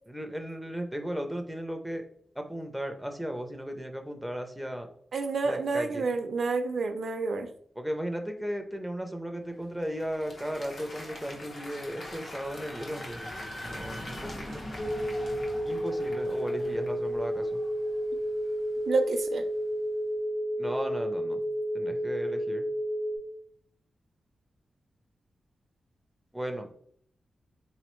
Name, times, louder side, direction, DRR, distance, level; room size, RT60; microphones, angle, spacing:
voice 1, 0.1-2.0 2.4-4.9 5.4-6.1 7.8-13.3 13.6-14.6 15.6-17.6 20.6-21.5 21.7-22.7 26.3-26.7, equal, ahead, 4 dB, 0.4 m, -36 dB
voice 2, 5.1-7.5 18.9-19.4, right 3 dB, 65° right, 8 dB, 0.4 m, -29 dB
Applause, 9.5-17.1, left 1 dB, 60° left, 0.8 m, -45 dB
sound 1, 9.8-19.6, left 1 dB, 40° left, 1.3 m, -45 dB
sound 2, 14.8-23.2, equal, 90° left, 1.2 m, -31 dB
3.7 x 3.0 x 3.0 m, 0.62 s
wide cardioid pair, 130°, 0 cm